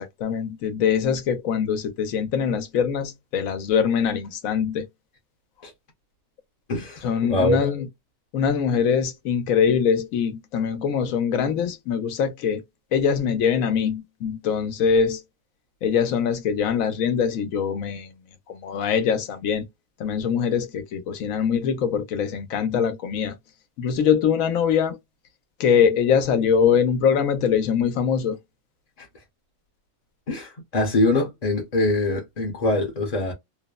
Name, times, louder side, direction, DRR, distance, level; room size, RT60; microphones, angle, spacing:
voice 1, 0.0-4.9 7.0-7.9 8.3-12.6 12.9-15.2 15.8-18.1 18.5-19.6 20.0-23.3 23.8-25.0 25.6-28.4, left 7 dB, 85° left, 1.1 m, -23 dB
voice 2, 6.7-7.7 29.0-29.1 30.3-33.3, left 2 dB, 40° left, 0.7 m, -23 dB
3.1 x 2.0 x 2.2 m
omnidirectional pair, 1.4 m